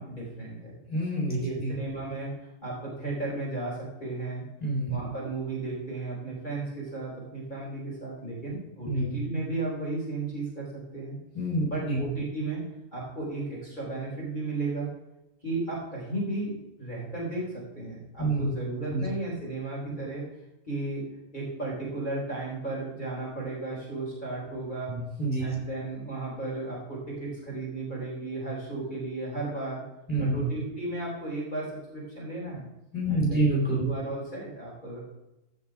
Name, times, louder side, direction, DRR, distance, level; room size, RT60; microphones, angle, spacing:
voice 1, 0.0-0.7 1.2-2.3 2.6-4.4 4.9-10.7 10.9-11.1 11.6-12.6 12.9-14.9 15.4-20.2 20.7-21.0 21.3-24.9 25.4-29.8 30.2-32.6 33.1-33.5 33.8-35.0, right 2 dB, 35° left, -4 dB, 4.2 m, -34 dB
voice 2, 0.9-1.7 4.6-5.0 8.9-9.2 11.3-12.0 18.2-18.5 18.9-19.0 24.9-25.4 30.1-30.4 32.9-33.8, right 1 dB, 5° right, -5 dB, 4.0 m, -27 dB
15.0 x 5.9 x 4.9 m, 0.91 s
omnidirectional pair, 1.4 m